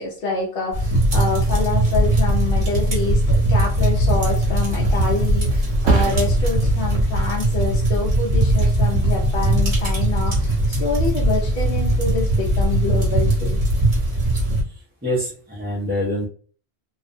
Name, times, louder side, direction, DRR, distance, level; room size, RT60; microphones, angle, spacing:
voice 1, 0.0-13.6, left 4 dB, 65° left, -2 dB, 0.7 m, -27 dB
sound 1, 0.7-14.6, right 1 dB, 40° right, 0.8 m, -19 dB
Thump thud, 4.4-11.7 12.1-12.6, right 6 dB, 85° right, 0.9 m, -30 dB
voice 2, 14.6-16.3, left 1 dB, 15° right, -5 dB, 0.4 m, -26 dB
2.4 x 2.1 x 2.5 m, 0.43 s
omnidirectional pair, 1.1 m